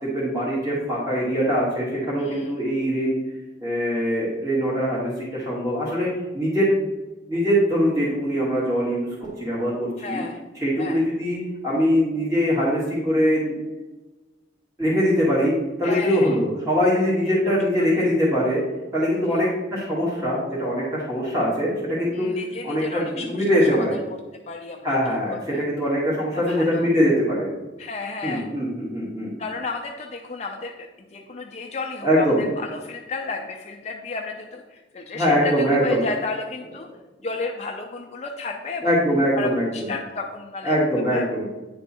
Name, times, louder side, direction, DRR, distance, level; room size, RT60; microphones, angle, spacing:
voice 1, 0.0-3.2 3.6-6.1 6.3-6.9 7.3-10.2 10.5-13.5 14.8-15.5 15.8-18.6 18.9-22.3 22.6-24.0 24.8-27.5 28.2-29.3 32.0-32.5 35.1-36.1 38.8-39.9 40.6-41.5, equal, 15° right, -8 dB, 1.6 m, -22 dB
voice 2, 2.2-2.5 10.0-10.4 10.8-11.0 15.8-16.4 17.4-17.6 19.3-19.4 22.1-23.8 24.5-25.0 25.3-25.6 26.5-26.9 27.8-28.5 29.4-36.9 37.2-38.9 39.4-40.8 41.1-41.2, left 3 dB, 35° left, 1 dB, 0.5 m, -32 dB
9.5 x 3.5 x 4.2 m, 1.1 s
head